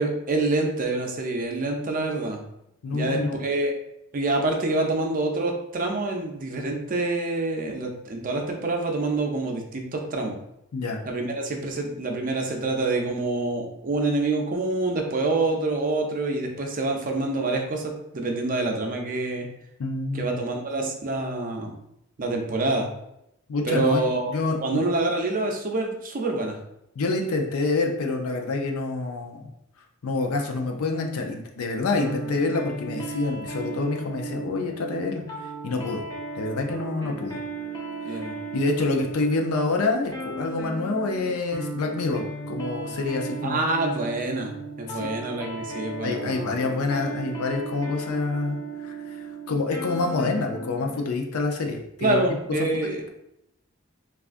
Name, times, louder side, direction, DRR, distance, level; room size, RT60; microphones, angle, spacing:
voice 1, 0.0-2.4 2.9-3.7 4.1-10.4 11.1-19.5 20.1-21.8 22.2-22.9 23.6-26.6 38.0-38.4 43.4-44.5 44.8-46.5 52.0-53.0, right 2 dB, 40° right, 2 dB, 0.5 m, -26 dB
voice 2, 2.8-3.3 10.7-11.0 19.8-20.3 23.5-24.0 24.3-24.9 27.0-29.5 30.0-35.2 35.6-36.0 36.4-37.4 38.1-38.2 38.5-43.6 44.9-45.1 46.0-48.6 48.8-52.2, left 3 dB, 85° left, 3 dB, 0.5 m, -27 dB
sound 1, 31.9-51.0, right 3 dB, 15° left, 0.5 m, -36 dB
3.5 x 2.4 x 2.5 m, 0.82 s
head